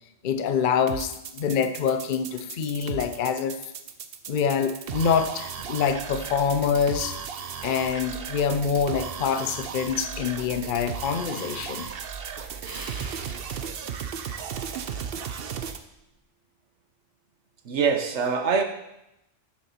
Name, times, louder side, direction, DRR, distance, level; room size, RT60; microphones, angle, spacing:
voice 1, 0.2-3.6 4.3-7.1 7.6-11.9, left 6 dB, 50° left, 9 dB, 0.7 m, -25 dB
sound 1, 0.9-15.8, right 7 dB, 60° right, 0.8 m, -36 dB
Breathing, 11.1-15.3 15.8-16.2, right 3 dB, 25° right, 0.5 m, -45 dB
voice 2, 17.6-18.6, right 5 dB, 80° right, 6 dB, 1.3 m, -23 dB
7.3 x 7.0 x 5.7 m, 0.85 s
omnidirectional pair, 1.2 m